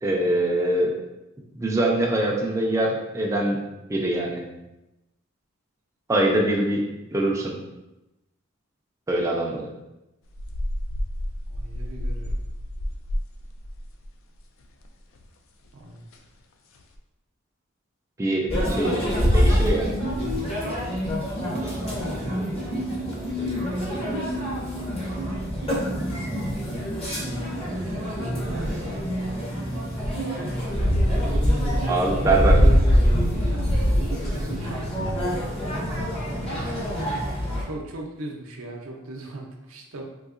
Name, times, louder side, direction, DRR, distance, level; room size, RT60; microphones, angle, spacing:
voice 1, 0.0-0.9 1.5-3.6 3.9-4.4 6.1-6.9 7.1-7.5 9.1-9.7 18.2-19.0 19.3-19.9 21.6-21.8 31.9-32.7, right 1 dB, 15° right, -2 dB, 0.4 m, -23 dB
sound 1, 10.3-14.9 15.1-15.3 15.7-15.8 16.1-16.3 16.7-17.0, equal, 70° left, 0.4 m, -31 dB
voice 2, 11.5-12.4 15.7-16.1 25.6-26.8 27.6-29.2 33.5-34.0 34.6-36.1 37.6-40.0, right 2 dB, 85° right, 1 dB, 0.6 m, -40 dB
sound 2, 18.5-37.6, equal, 30° left, 0.6 m, -24 dB
3.8 x 2.7 x 2.4 m, 0.97 s
head